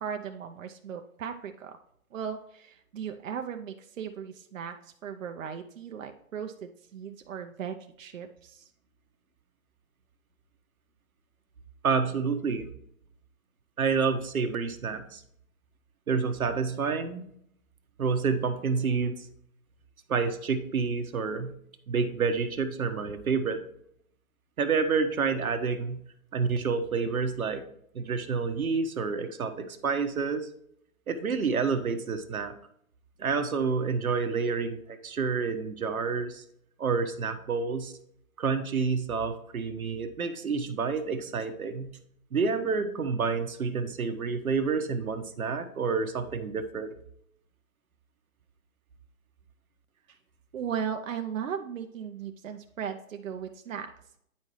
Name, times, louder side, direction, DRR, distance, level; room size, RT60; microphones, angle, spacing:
voice 1, 0.0-1.8 2.1-8.7 50.5-53.9, right 7 dB, 65° right, 5 dB, 0.8 m, -37 dB
voice 2, 11.8-12.7 13.8-15.2 16.1-17.2 18.0-19.2 20.1-21.5 21.9-23.6 24.6-26.0 26.3-27.6 27.9-30.5 31.1-32.5 33.2-36.4 36.8-37.9 38.4-41.9 42.3-46.9, right 5 dB, 90° right, 8 dB, 1.2 m, -28 dB
9.6 x 5.6 x 3.1 m, 0.70 s
hypercardioid pair, 150°, 42 cm